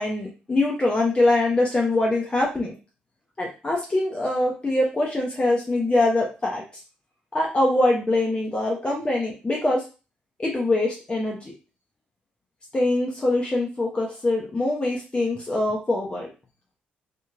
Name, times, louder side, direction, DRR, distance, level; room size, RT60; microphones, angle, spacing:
voice 1, 0.0-2.7 3.4-6.6 7.3-9.8 10.4-11.5 12.7-16.3, left 2 dB, 20° left, -1 dB, 0.7 m, -23 dB
2.9 x 2.6 x 2.5 m, 0.32 s
figure-of-eight pair, 45°, 5 cm